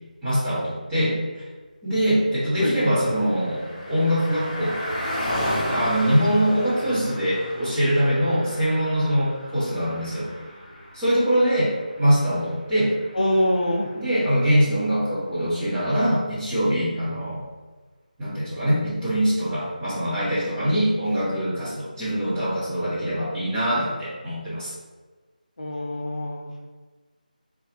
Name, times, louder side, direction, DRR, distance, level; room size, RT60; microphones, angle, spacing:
voice 1, 0.2-1.2 1.8-4.8 5.7-10.3 10.9-12.9 13.9-17.4 18.2-24.7, equal, 10° right, -14 dB, 1.3 m, -23 dB
Car passing by, 2.3-14.0, equal, 30° left, 1.1 m, -34 dB
voice 2, 13.1-13.9 25.6-26.7, left 1 dB, 60° left, 0 dB, 0.5 m, -24 dB
4.3 x 2.4 x 3.0 m, 1.3 s
figure-of-eight pair, 165°, 5 cm